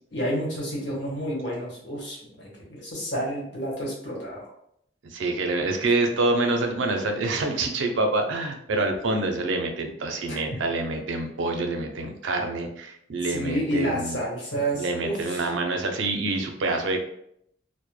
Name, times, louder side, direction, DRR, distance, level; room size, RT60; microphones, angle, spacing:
voice 1, 0.1-4.5 10.3-10.6 13.2-15.5, right 1 dB, 70° left, -4 dB, 1.0 m, -30 dB
voice 2, 5.0-14.2 14.7-17.1, right 2 dB, 85° right, 4 dB, 0.4 m, -26 dB
2.1 x 2.0 x 3.0 m, 0.73 s
head